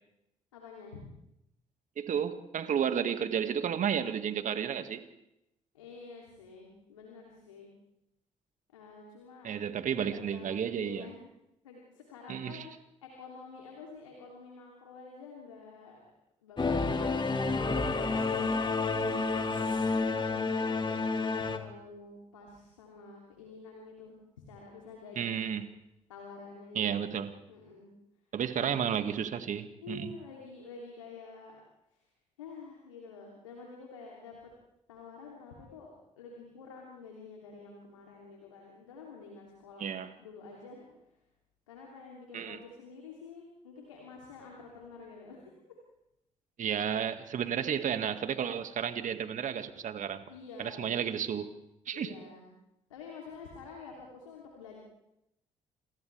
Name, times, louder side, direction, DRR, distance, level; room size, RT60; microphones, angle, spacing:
voice 1, 0.5-1.1 5.7-7.7 8.7-9.5 10.1-11.2 11.6-12.7 13.0-16.0 16.4-17.5 17.9-18.7 19.2-24.2 24.5-25.6 26.1-27.1 27.5-27.9 28.6-28.9 29.8-31.6 31.9-32.0 32.4-34.5 34.9-35.9 36.2-40.9 41.7-45.8 47.6-47.8 50.3-50.9 51.9-52.5 52.9-54.8, left 4 dB, 85° left, -1 dB, 3.2 m, -49 dB
voice 2, 2.0-5.0 9.4-11.1 12.3-12.7 25.2-25.7 26.8-27.3 28.3-30.1 39.8-40.1 42.3-42.6 46.6-50.2 50.6-51.5 51.9-52.1, right 8 dB, 55° right, 9 dB, 2.0 m, -32 dB
Singing / Musical instrument, 16.6-21.6, left 3 dB, 30° left, 2.7 m, -29 dB
28.5 x 28.0 x 3.5 m, 0.84 s
hypercardioid pair, 45°, 16 cm